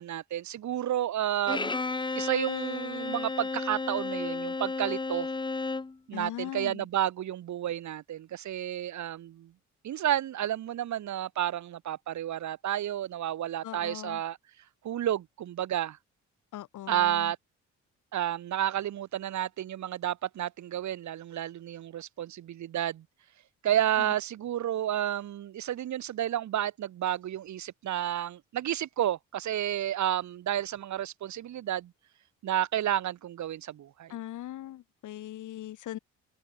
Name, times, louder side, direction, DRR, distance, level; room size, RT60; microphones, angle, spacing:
voice 1, 0.0-5.3 6.1-9.5 9.8-14.4 14.8-16.0 16.9-17.4 18.1-23.0 23.6-31.9 32.4-34.2, right 11 dB, 70° right, 2.6 m, -31 dB
Bowed string instrument, 1.5-6.0, left 3 dB, 15° left, 0.9 m, -33 dB
voice 2, 6.1-6.8 13.6-14.2 16.5-17.3 24.0-24.1 34.1-36.0, left 13 dB, 80° left, 3.3 m, -40 dB
open air
cardioid pair, 90°, 30 cm